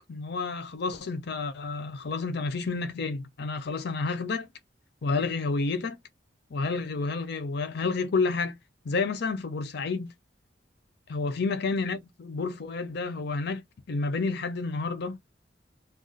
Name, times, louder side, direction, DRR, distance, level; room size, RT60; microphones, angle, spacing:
voice 1, 0.1-4.5 5.0-6.0 6.5-8.5 8.8-10.1 11.1-13.6 13.9-15.2, left 4 dB, 65° left, 0.5 m, -30 dB
2.4 x 2.2 x 3.8 m
head